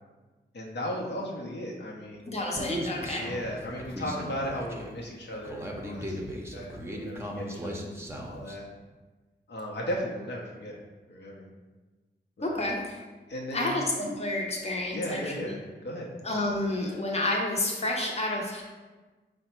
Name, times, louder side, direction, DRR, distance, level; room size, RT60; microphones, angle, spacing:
voice 1, 0.5-2.3 3.2-6.2 6.5-7.9 8.3-8.7 9.5-10.8 11.1-11.5 12.4-12.7 13.3-13.8 14.9-16.1, equal, 70° left, -2 dB, 0.8 m, -36 dB
voice 2, 2.3-3.3 12.4-13.0 13.5-15.6 16.2-18.6, left 2 dB, 35° left, -2 dB, 0.8 m, -30 dB
Human voice, 2.6-8.6, equal, 15° right, 0.6 m, -37 dB
4.8 x 2.2 x 4.3 m, 1.3 s
wide cardioid pair, 75°, 18 cm